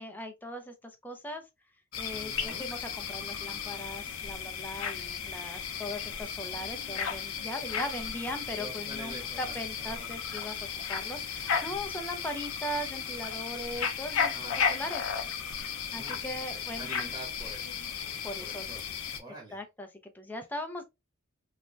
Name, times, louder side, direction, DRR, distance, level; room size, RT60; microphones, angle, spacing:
voice 1, 0.0-1.4 2.0-10.6 10.9-14.4 14.7-15.0 15.6-16.9 18.2-18.7 19.5-20.8, left 1 dB, 10° left, 0.5 m, -39 dB
sound 1, 1.9-19.2, left 7 dB, 70° left, 0.6 m, -35 dB
voice 2, 2.1-2.7 8.6-10.1 14.3-14.6 15.9-16.2 16.5-17.7 18.0-18.9 19.2-19.6, right 1 dB, 15° right, 0.9 m, -46 dB
3.2 x 2.1 x 2.5 m
head